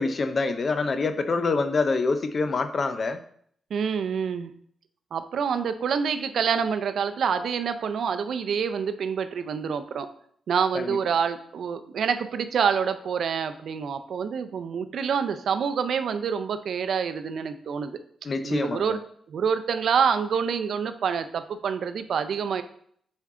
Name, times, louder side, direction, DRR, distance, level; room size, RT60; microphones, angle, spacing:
voice 1, 0.0-3.2 10.7-11.0 18.2-19.0, left 3 dB, 40° left, 9 dB, 0.6 m, -26 dB
voice 2, 3.7-4.5 5.1-10.1 10.5-18.0 18.4-19.0 19.3-22.6, right 6 dB, 70° right, 10 dB, 0.5 m, -27 dB
7.3 x 4.5 x 3.7 m, 0.63 s
cardioid pair, 110°, 0 cm